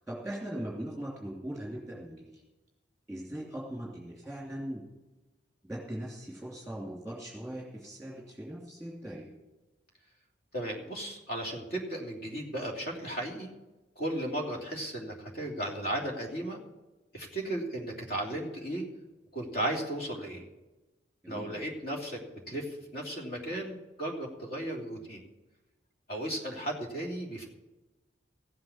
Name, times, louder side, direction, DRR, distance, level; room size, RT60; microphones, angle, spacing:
voice 1, 0.1-2.4 3.1-4.8 5.6-9.3 21.2-21.6, right 1 dB, ahead, -4 dB, 2.8 m, -40 dB
voice 2, 10.5-13.5 14.0-16.6 17.1-18.8 19.3-20.4 21.3-25.2 26.1-27.4, right 1 dB, 55° left, 0 dB, 3.1 m, -35 dB
15.5 x 7.8 x 7.3 m, 1.1 s
head